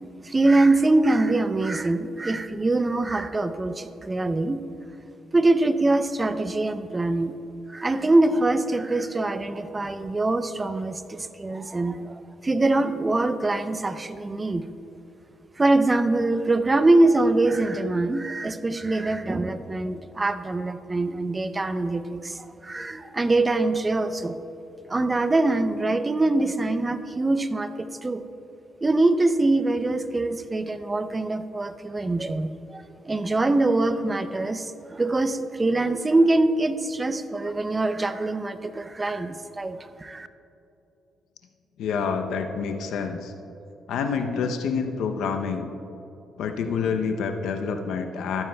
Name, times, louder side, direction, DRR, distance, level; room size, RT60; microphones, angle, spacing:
voice 1, 0.2-4.6 5.3-7.3 7.7-12.1 12.4-14.6 15.6-24.4 24.9-28.2 28.8-40.3, right 2 dB, 20° right, 11 dB, 0.6 m, -23 dB
voice 2, 41.8-43.3 43.9-45.7 46.4-48.4, left 5 dB, 80° left, 5 dB, 0.7 m, -27 dB
14.5 x 12.0 x 2.3 m, 2.9 s
cardioid pair, 90°, 0 cm